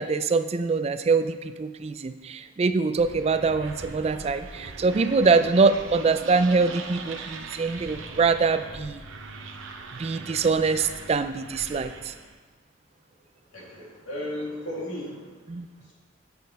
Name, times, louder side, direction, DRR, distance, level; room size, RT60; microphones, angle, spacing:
voice 1, 0.0-9.0 9.9-12.1 15.5-15.7, right 4 dB, 30° right, 11 dB, 0.3 m, -24 dB
sound 1, 2.9-12.3, right 3 dB, 75° right, 0.8 m, -41 dB
voice 2, 13.5-15.4 15.8-15.9, left 1 dB, 80° left, -3 dB, 2.5 m, -35 dB
8.6 x 6.1 x 5.4 m, 1.3 s
head